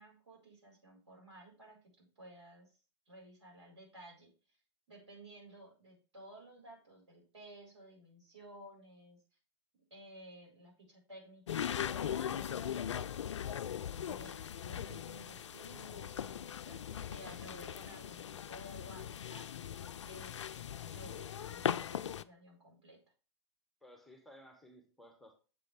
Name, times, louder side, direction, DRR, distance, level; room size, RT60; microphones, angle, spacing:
voice 1, 0.0-2.7 3.1-4.3 4.9-9.2 9.9-13.1 14.0-19.5 20.0-23.0, right 1 dB, 75° right, -1 dB, 4.7 m, -55 dB
sound 1, 11.5-22.2, left 9 dB, 80° left, 0.4 m, -39 dB
voice 2, 16.7-17.6 23.8-25.4, left 1 dB, ahead, 4 dB, 1.1 m, -58 dB
7.5 x 4.1 x 4.9 m, 0.34 s
hypercardioid pair, 115°, 15 cm